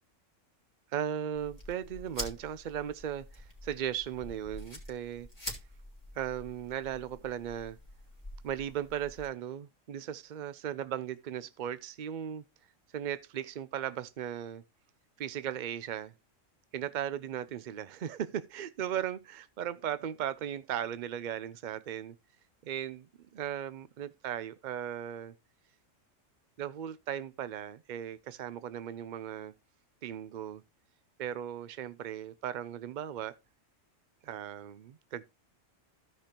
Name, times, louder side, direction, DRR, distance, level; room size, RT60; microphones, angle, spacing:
voice 1, 0.9-5.3 6.2-7.8 8.4-12.4 12.9-14.6 15.2-16.1 16.7-22.1 22.6-23.1 23.3-25.3 26.6-29.5 30.0-30.6 31.2-33.3 34.2-35.2, right 10 dB, 65° right, 0.4 m, -37 dB
sound 1, 1.3-9.3, left 1 dB, 15° left, 2.8 m, -46 dB
15.0 x 5.0 x 2.9 m
omnidirectional pair, 1.3 m